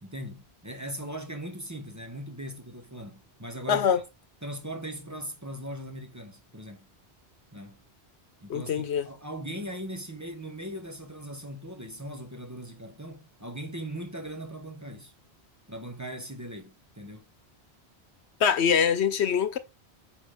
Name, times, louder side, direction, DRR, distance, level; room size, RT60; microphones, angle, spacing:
voice 1, 0.0-4.0 4.4-6.9 7.5-7.8 8.4-15.1 15.7-17.3, right 1 dB, 15° right, 1.2 m, -39 dB
voice 2, 3.7-4.0 8.5-9.1 18.4-19.6, left 7 dB, 90° left, 1.1 m, -24 dB
9.1 x 5.3 x 3.5 m
omnidirectional pair, 1.1 m